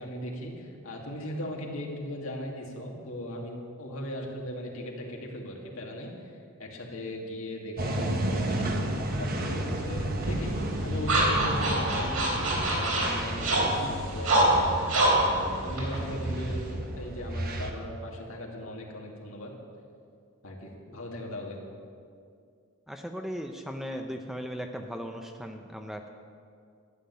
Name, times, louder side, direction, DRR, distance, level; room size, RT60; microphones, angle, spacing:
voice 1, 0.0-6.3 6.6-8.9 9.2-10.5 10.8-14.7 15.2-16.7 16.9-19.5 20.4-21.6, left 1 dB, 70° left, -1 dB, 2.3 m, -38 dB
sound 1, 7.8-17.7, right 1 dB, 40° right, 1.1 m, -32 dB
sound 2, 10.2-16.7, right 1 dB, 90° right, 3.8 m, -26 dB
voice 2, 22.9-26.1, equal, ahead, 4 dB, 0.6 m, -37 dB
12.5 x 7.5 x 9.4 m, 2.3 s
head